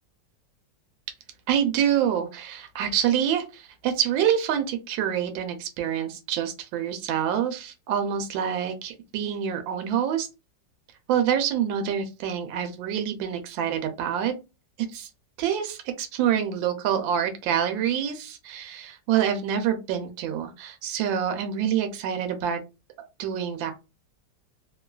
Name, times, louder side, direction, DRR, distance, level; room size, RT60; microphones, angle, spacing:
voice 1, 1.5-10.3 11.1-14.3 14.9-15.1 15.4-22.6 23.2-23.7, right 9 dB, 85° right, 7 dB, 1.3 m, -26 dB
3.3 x 2.3 x 2.2 m, 0.27 s
omnidirectional pair, 2.0 m